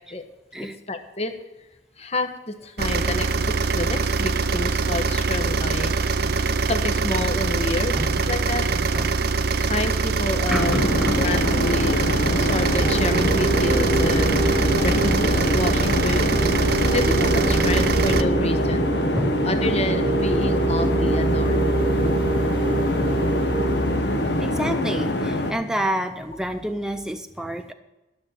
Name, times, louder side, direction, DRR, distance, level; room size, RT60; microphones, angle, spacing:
voice 1, 0.9-1.3 2.0-5.9 6.7-8.7 9.6-10.8 11.2-12.0 12.3-14.5 14.8-16.3 16.9-18.9 19.4-21.9, left 2 dB, 35° left, 7 dB, 1.1 m, -29 dB
sound 1, 2.8-18.2, right 4 dB, 60° right, 0.6 m, -23 dB
voice 2, 8.7-9.3 10.5-12.1 19.2-19.5 24.4-27.7, right 1 dB, 5° right, 6 dB, 0.5 m, -29 dB
sound 2, 10.5-25.5, left 1 dB, 65° left, 1.2 m, -24 dB
sound 3, 12.8-24.8, right 3 dB, 25° right, 1.2 m, -26 dB
13.0 x 6.4 x 7.4 m, 1.1 s
head